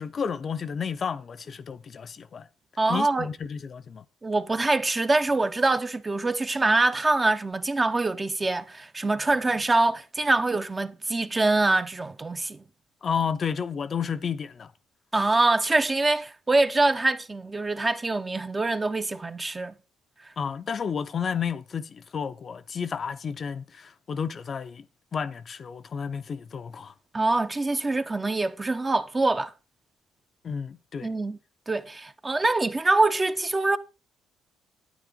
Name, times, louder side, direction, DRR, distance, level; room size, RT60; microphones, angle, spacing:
voice 1, 0.0-2.5 2.9-4.0 13.0-14.7 20.4-24.9 25.1-26.9 30.4-31.1, left 6 dB, 45° left, 0.6 m, -31 dB
voice 2, 2.8-3.3 4.2-12.6 15.1-19.7 27.1-29.5 31.0-31.4 31.7-33.8, right 2 dB, 25° right, 0.8 m, -24 dB
9.3 x 9.1 x 3.8 m
supercardioid pair, 60°, 0 cm